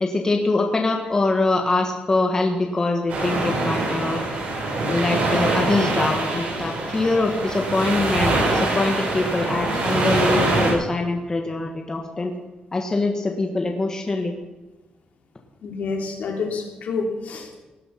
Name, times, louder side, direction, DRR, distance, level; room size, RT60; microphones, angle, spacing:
voice 1, 0.0-4.2 4.9-12.3 12.7-14.3, left 2 dB, 20° left, 2 dB, 1.6 m, -23 dB
sound 1, 3.1-10.7, right 2 dB, 85° right, 7.0 m, -24 dB
voice 2, 15.6-17.6, left 4 dB, 70° left, 1 dB, 3.3 m, -28 dB
19.0 x 11.5 x 5.9 m, 1.2 s
wide cardioid pair, 165°, 3 cm